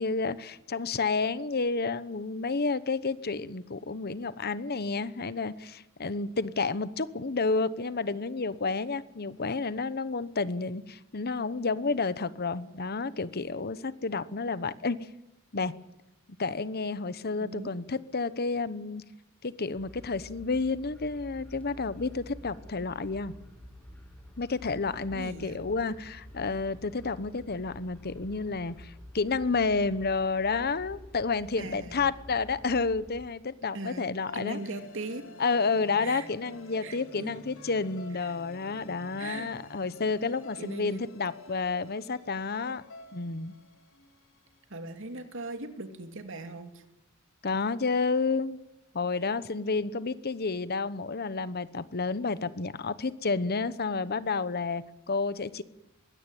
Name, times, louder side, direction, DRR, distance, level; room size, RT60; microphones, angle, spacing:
voice 1, 0.0-15.0 15.5-15.7 16.4-19.0 19.4-23.3 24.4-34.6 35.4-42.8 43.1-43.5 47.4-48.6 48.9-55.6, left 4 dB, 50° left, 15 dB, 1.0 m, -30 dB
voice 2, 17.4-17.7 25.1-25.6 31.6-32.1 33.7-34.1 34.3-35.3 36.0-36.3 36.8-37.3 38.2-38.3 39.2-39.5 40.6-41.0 44.7-46.8, right 2 dB, 65° right, 7 dB, 2.7 m, -39 dB
sound 1, 19.8-33.2, left 1 dB, 5° left, 6.7 m, -49 dB
sound 2, 34.3-44.5, left 2 dB, 75° left, 4.6 m, -50 dB
22.0 x 17.0 x 9.2 m, 0.87 s
head